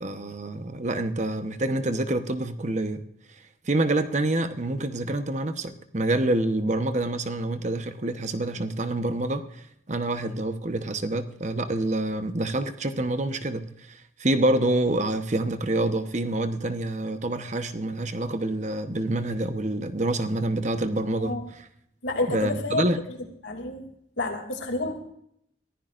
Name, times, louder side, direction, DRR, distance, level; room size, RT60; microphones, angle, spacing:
voice 1, 0.0-3.0 3.7-9.4 9.9-21.6 22.3-23.0, right 2 dB, 40° right, 9 dB, 1.0 m, -27 dB
voice 2, 22.0-22.8 23.4-23.9 24.2-25.0, left 2 dB, 85° left, 3 dB, 2.7 m, -29 dB
23.0 x 15.0 x 2.6 m, 0.72 s
head